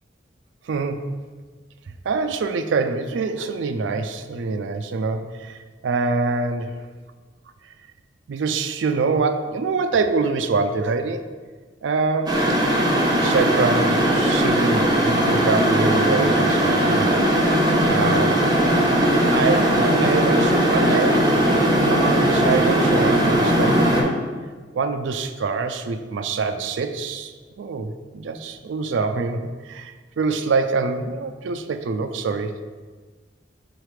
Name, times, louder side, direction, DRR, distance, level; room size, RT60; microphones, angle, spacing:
voice 1, 0.7-1.0 2.0-5.6 5.8-6.8 8.3-11.3 11.8-12.4 13.2-17.2 17.9-18.4 19.3-21.3 21.9-24.2 24.7-27.3 27.6-32.5, right 4 dB, 80° right, 8 dB, 0.4 m, -25 dB
sound 1, 12.3-24.0, right 1 dB, 25° right, 0.9 m, -19 dB
4.9 x 4.0 x 4.8 m, 1.4 s
head